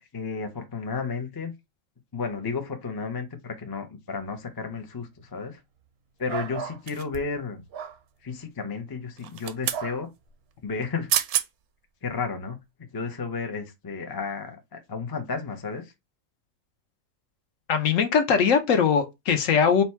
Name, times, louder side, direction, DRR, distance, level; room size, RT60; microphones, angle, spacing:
voice 1, 0.0-1.5 2.1-5.6 6.2-7.6 8.2-10.1 10.6-11.1 12.0-12.6 12.9-15.9, left 5 dB, 30° left, 0.4 m, -32 dB
sound 1, 6.3-6.8 7.7-8.0 9.7-10.0, right 8 dB, 60° right, 0.7 m, -34 dB
sound 2, 6.9-7.5 9.2-9.9 10.8-10.9 11.1-11.5 12.0-12.2, right 10 dB, 85° right, 1.1 m, -28 dB
voice 2, 17.7-19.8, left 6 dB, 70° left, 1.1 m, -21 dB
4.2 x 2.3 x 4.2 m
omnidirectional pair, 1.5 m